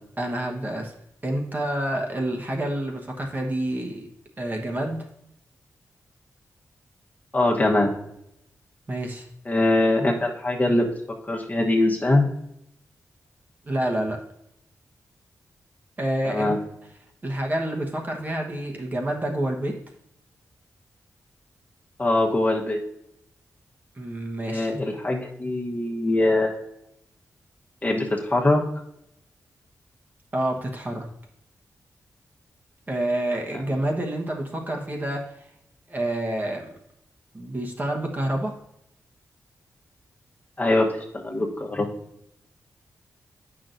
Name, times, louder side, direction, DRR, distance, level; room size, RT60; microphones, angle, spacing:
voice 1, 0.2-0.9 1.2-4.1 4.4-5.0 8.9-9.3 13.6-14.2 16.0-16.6 17.2-19.7 23.9-24.7 30.3-31.1 32.9-35.3 35.9-36.7 37.3-38.5, right 1 dB, 30° right, 1 dB, 1.2 m, -28 dB
voice 2, 7.3-7.9 9.4-10.9 11.2-12.3 16.2-16.6 22.0-22.8 24.4-26.6 27.8-28.6 40.6-40.9 41.1-41.9, left 2 dB, 30° left, -1 dB, 1.1 m, -22 dB
8.6 x 6.0 x 2.6 m, 0.78 s
cardioid pair, 75°, 6 cm